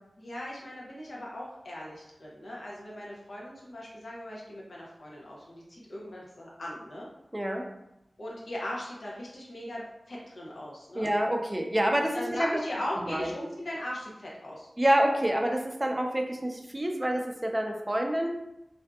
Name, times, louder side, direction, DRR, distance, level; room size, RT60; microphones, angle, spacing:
voice 1, 0.2-7.1 8.2-11.1 12.1-14.7, left 1 dB, 85° left, -4 dB, 0.7 m, -39 dB
voice 2, 7.3-7.6 11.0-12.6 13.0-13.3 14.8-18.3, right 1 dB, 20° right, 2 dB, 0.4 m, -27 dB
2.5 x 2.4 x 2.3 m, 0.85 s
wide cardioid pair, 75°, 0 cm